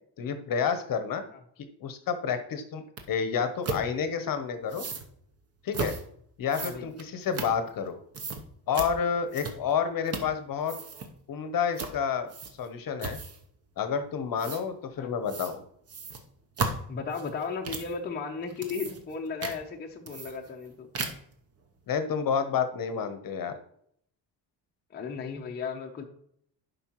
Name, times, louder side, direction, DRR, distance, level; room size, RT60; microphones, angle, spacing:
voice 1, 0.2-1.2 1.8-4.8 5.6-5.9 6.4-8.0 8.7-10.7 11.3-12.3 12.6-13.2 13.8-15.6 21.9-23.5, left 7 dB, 50° left, 9 dB, 0.8 m, -29 dB
sound 1, 3.0-3.1 3.6-3.8 4.7-5.1 5.7-6.0 6.5-7.9 8.1-8.4 8.7-8.9 9.3-9.7 10.1-10.4 10.6-11.1 11.8-12.0 12.3-12.7 13.0-13.4 14.4-14.6 15.3-15.6 15.9-17.9 18.4-19.1 19.4-19.6 20.1-20.7 20.9-21.3, right 4 dB, 35° right, 0.8 m, -35 dB
voice 2, 6.6-6.9 15.0-15.1 16.9-20.9 24.9-26.1, left 5 dB, 25° left, 1 dB, 0.6 m, -35 dB
11.0 x 5.3 x 3.0 m, 0.67 s
cardioid pair, 170°, 45 cm